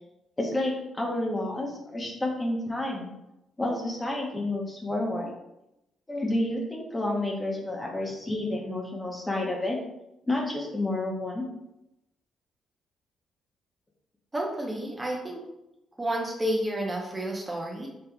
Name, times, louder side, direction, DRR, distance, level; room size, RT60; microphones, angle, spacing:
voice 1, 0.4-3.1 3.6-5.3 6.1-9.8 10.3-11.5, left 1 dB, 20° left, -1 dB, 1.0 m, -30 dB
voice 2, 14.3-15.4 16.0-17.9, right 1 dB, 20° right, -1 dB, 0.9 m, -30 dB
4.3 x 3.3 x 2.3 m, 0.88 s
supercardioid pair, 70°, 0 cm